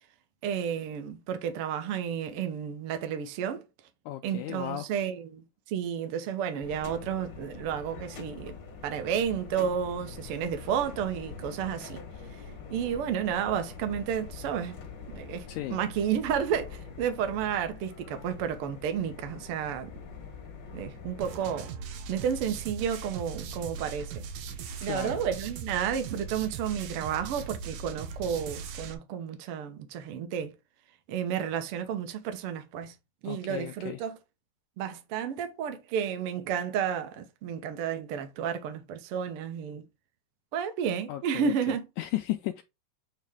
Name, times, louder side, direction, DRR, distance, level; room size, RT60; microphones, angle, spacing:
voice 1, 0.4-3.6 4.2-8.6 8.8-12.0 12.7-14.7 15.1-19.9 20.7-21.7 22.1-24.2 24.8-30.5 31.1-32.9 33.2-34.1 34.8-39.8 40.5-41.8, right 8 dB, 65° right, 1.4 m, -31 dB
voice 2, 4.1-4.9 15.5-15.8 24.8-25.2 33.2-34.0 41.1-42.6, left 15 dB, 80° left, 1.8 m, -35 dB
sound 1, 6.6-21.4, left 5 dB, 55° left, 1.3 m, -44 dB
sound 2, 21.2-28.9, right 5 dB, 85° right, 2.6 m, -39 dB
8.8 x 3.2 x 3.6 m
omnidirectional pair, 3.8 m